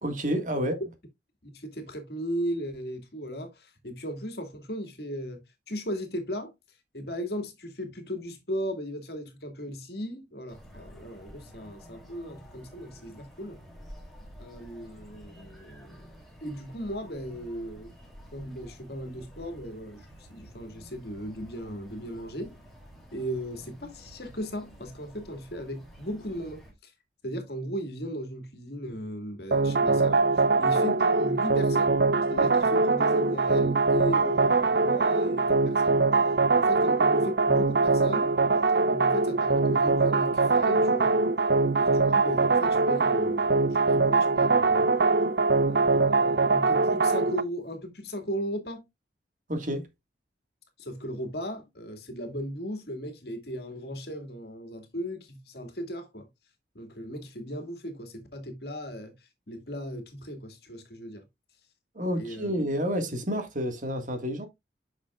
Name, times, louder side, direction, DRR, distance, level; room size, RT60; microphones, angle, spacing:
voice 1, 0.0-0.8 49.5-49.9 62.0-64.5, equal, 45° right, 1.8 m, -29 dB
voice 2, 1.5-5.4 5.7-13.6 14.4-16.1 16.4-17.9 18.3-22.6 23.1-26.9 27.2-32.0 32.3-38.3 38.9-41.2 41.8-45.0 45.7-48.8 50.8-56.3 56.7-61.3 62.1-62.5, equal, 60° left, 2.1 m, -37 dB
sound 1, 10.5-26.7, equal, ahead, 2.9 m, -50 dB
sound 2, 29.5-47.4, right 3 dB, 65° right, 0.6 m, -23 dB
9.1 x 6.2 x 2.4 m
head